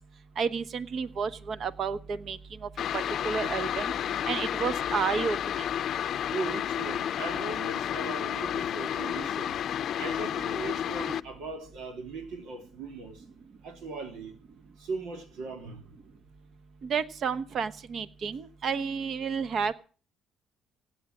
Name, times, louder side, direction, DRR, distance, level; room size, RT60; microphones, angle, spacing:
voice 1, 0.4-3.9 4.2-5.7 16.8-19.7, right 6 dB, 50° right, 1.2 m, -31 dB
sound 1, 2.8-11.2, left 10 dB, 55° left, 0.6 m, -31 dB
voice 2, 6.3-9.6 10.0-13.2 13.6-14.4 14.8-15.8, right 3 dB, 90° right, 3.6 m, -38 dB
17.0 x 10.0 x 6.2 m
cardioid pair, 130°, 0 cm